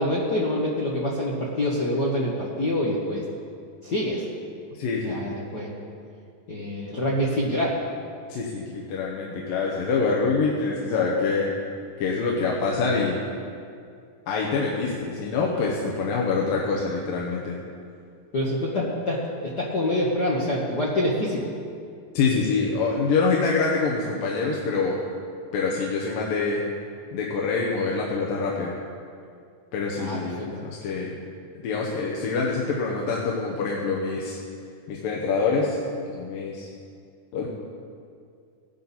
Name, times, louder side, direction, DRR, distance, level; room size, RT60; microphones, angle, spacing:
voice 1, 0.0-3.2 3.8-4.3 5.0-5.7 6.5-7.8 18.3-21.5 30.0-30.5, left 1 dB, 60° left, -5 dB, 1.0 m, -26 dB
voice 2, 4.7-5.4 8.3-11.5 12.0-13.2 14.3-17.6 22.1-25.0 25.5-26.6 27.1-28.8 29.7-31.2 31.6-34.4 34.9-35.8 36.1-36.7 37.3-37.5, left 4 dB, 90° left, -2 dB, 2.8 m, -25 dB
16.5 x 11.0 x 4.2 m, 2.3 s
omnidirectional pair, 3.9 m